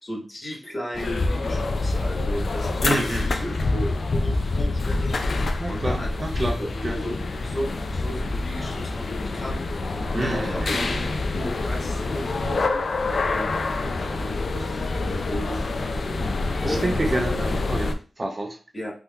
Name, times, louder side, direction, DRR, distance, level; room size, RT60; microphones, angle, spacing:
voice 1, 0.0-5.2 5.7-6.1 6.6-6.7 7.0-7.2 7.4-9.6 10.1-11.1 11.3-12.8 13.2-13.5 13.8-15.6 16.6-16.9 18.7-18.9, equal, 25° left, -3 dB, 1.2 m, -34 dB
sound 1, 0.9-18.0, left 3 dB, 60° left, 0.3 m, -26 dB
voice 2, 2.8-3.3 5.6-7.0 10.1-11.0 16.6-18.6, right 2 dB, 35° right, 3 dB, 0.6 m, -28 dB
3.5 x 2.8 x 2.3 m, 0.37 s
wide cardioid pair, 95°, 0 cm